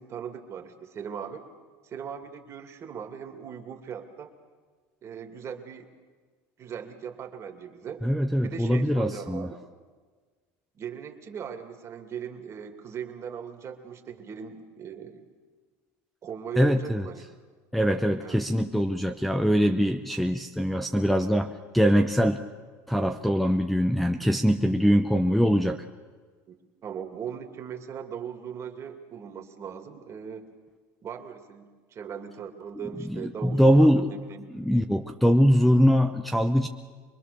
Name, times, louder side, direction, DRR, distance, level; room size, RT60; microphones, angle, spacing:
voice 1, 0.0-1.4 1.8-4.3 5.0-5.9 6.6-8.0 8.4-9.6 10.8-15.2 16.2-17.3 18.2-18.4 26.5-30.5 31.0-34.5, right 7 dB, 35° right, 5 dB, 2.5 m, -39 dB
voice 2, 8.0-9.5 16.6-17.1 17.7-22.4 22.9-25.8 33.0-34.1 34.5-36.7, equal, ahead, 6 dB, 0.8 m, -22 dB
25.5 x 21.0 x 6.9 m, 1.5 s
supercardioid pair, 115°, 8 cm